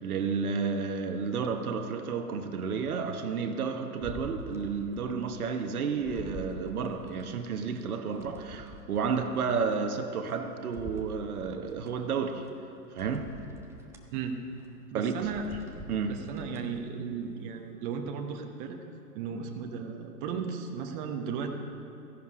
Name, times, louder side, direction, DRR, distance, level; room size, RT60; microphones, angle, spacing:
voice 1, 0.0-12.5 12.9-13.3 14.9-15.2 15.9-16.2, right 5 dB, 65° right, 6 dB, 1.3 m, -31 dB
sound 1, 4.0-5.2 5.6-7.2 7.8-10.3 10.7-11.9 12.4-12.5 13.0-14.1 14.5-14.7 15.1-16.8 17.2-17.3, right 2 dB, 5° right, 0.8 m, -46 dB
voice 2, 14.1-14.5 14.9-15.5 16.1-18.8 19.1-21.5, right 6 dB, 30° right, 3 dB, 1.2 m, -35 dB
15.5 x 11.0 x 5.0 m, 2.8 s
hypercardioid pair, 120°, 48 cm